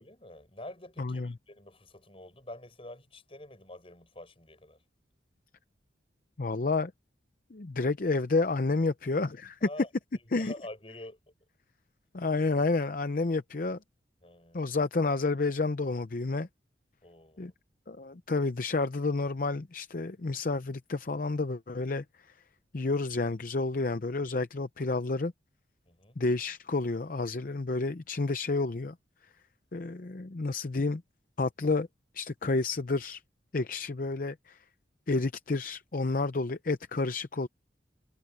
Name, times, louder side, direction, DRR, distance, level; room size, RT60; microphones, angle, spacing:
voice 1, 0.0-4.8 9.6-9.9 10.4-11.2 14.2-14.8 17.0-17.5 25.9-26.2, left 1 dB, 30° left, 7.4 m, -47 dB
voice 2, 1.0-1.4 6.4-6.9 7.5-9.7 10.3-10.5 12.1-13.8 14.5-16.5 17.4-17.5 17.9-22.0 22.7-25.3 26.2-28.9 29.7-31.0 31.4-31.9 32.1-33.2 33.5-34.6 35.1-37.5, left 3 dB, 50° left, 0.6 m, -30 dB
head